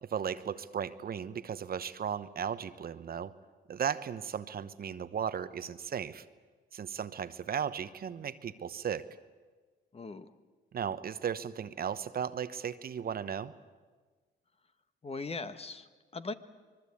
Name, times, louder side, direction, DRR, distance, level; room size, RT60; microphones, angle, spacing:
voice 1, 0.1-3.3 3.7-6.2 6.7-9.2 10.7-13.5, right 8 dB, 50° right, 13 dB, 0.9 m, -36 dB
voice 2, 9.9-10.3 15.0-16.3, left 3 dB, 30° left, 11 dB, 1.2 m, -40 dB
25.0 x 21.0 x 8.5 m, 1.4 s
cardioid pair, 90°, 20 cm